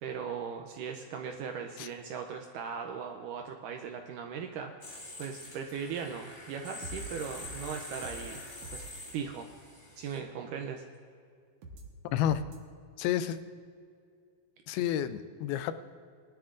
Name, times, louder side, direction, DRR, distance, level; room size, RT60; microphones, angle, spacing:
voice 1, 0.0-8.4 8.7-8.8 9.1-9.5 10.0-10.9, right 6 dB, 80° right, 4 dB, 1.9 m, -39 dB
sound 1, 4.8-10.2, left 1 dB, 65° left, 0.4 m, -45 dB
sound 2, 6.8-7.0 7.4-7.6 8.0-8.2 8.5-8.8 11.6-11.8 12.2-12.6, right 1 dB, 60° right, 1.6 m, -45 dB
voice 2, 12.0-12.4 13.0-13.4 14.7-15.7, left 10 dB, 90° left, 12 dB, 2.5 m, -30 dB
20.5 x 11.5 x 2.6 m, 2.2 s
omnidirectional pair, 4.3 m